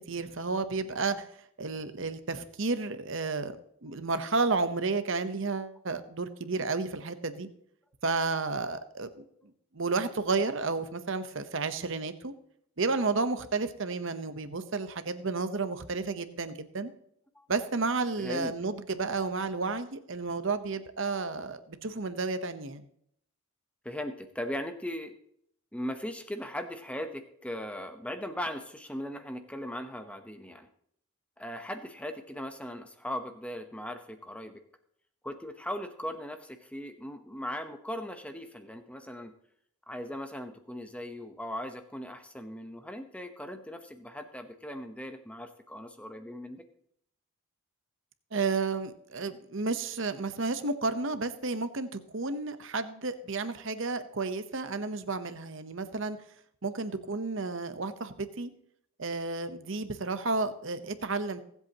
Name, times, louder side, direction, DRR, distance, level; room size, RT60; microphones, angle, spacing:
voice 1, 0.1-1.3 1.6-3.6 3.8-7.5 8.0-9.2 9.7-12.3 12.8-16.9 17.5-22.9 48.3-56.2 56.6-58.5 59.0-61.4, right 3 dB, 60° right, 10 dB, 0.9 m, -32 dB
voice 2, 18.2-18.5 23.8-25.1 25.7-30.7 31.4-34.6 35.2-39.3 39.9-46.6, equal, 5° left, 7 dB, 0.9 m, -39 dB
22.5 x 8.1 x 2.9 m, 0.69 s
head